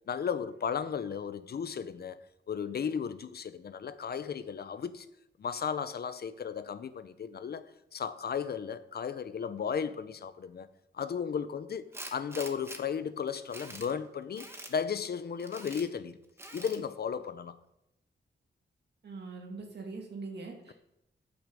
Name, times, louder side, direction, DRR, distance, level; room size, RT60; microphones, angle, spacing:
voice 1, 0.1-2.2 2.5-5.1 5.4-7.6 7.9-10.7 10.9-11.8 12.1-16.2 16.5-17.6, left 7 dB, 55° left, 0.6 m, -35 dB
Tools, 11.9-12.8 13.3-13.9 14.4-14.7 15.4-15.9 16.4-16.8, right 1 dB, 15° right, 1.0 m, -45 dB
voice 2, 19.0-20.7, right 3 dB, 60° right, 2.3 m, -42 dB
8.8 x 6.1 x 6.8 m
wide cardioid pair, 145°, 19 cm